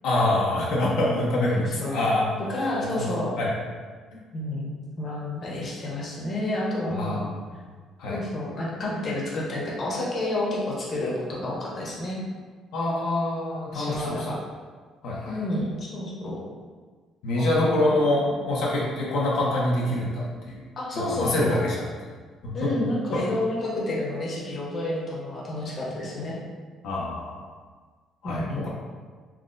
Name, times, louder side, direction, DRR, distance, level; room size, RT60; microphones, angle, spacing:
voice 1, 0.0-2.6 3.0-3.1 3.4-3.6 4.1-4.2 6.9-7.3 8.0-8.2 12.7-14.3 15.0-15.4 17.2-20.6 21.0-21.8 22.4-22.7 23.1-23.2 26.8-27.4 28.2-28.7, left 1 dB, 80° left, -4 dB, 0.7 m, -25 dB
voice 2, 1.6-2.0 2.5-3.3 4.3-7.2 8.1-12.2 13.7-14.4 15.3-16.4 17.4-17.5 20.8-21.6 22.5-26.4 28.2-28.7, left 1 dB, 40° left, -4 dB, 0.9 m, -30 dB
5.7 x 2.0 x 2.5 m, 1.5 s
cardioid pair, 125°, 0 cm